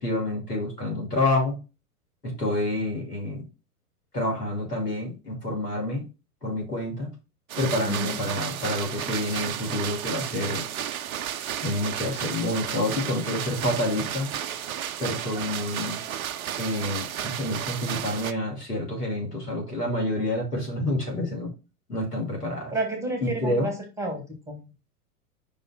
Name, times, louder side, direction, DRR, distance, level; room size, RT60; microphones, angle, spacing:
voice 1, 0.0-1.6 2.2-3.4 4.1-6.1 6.4-7.1 7.6-10.7 11.6-14.3 15.0-16.0 16.6-21.5 21.9-22.7 23.2-23.7, left 1 dB, 85° left, 0 dB, 3.0 m, -28 dB
sound 1, 7.5-18.3, right 10 dB, 65° right, 0.6 m, -33 dB
voice 2, 22.7-24.6, right 2 dB, 5° right, 3 dB, 1.5 m, -31 dB
5.3 x 3.8 x 5.8 m, 0.30 s
figure-of-eight pair, 100°, 46 cm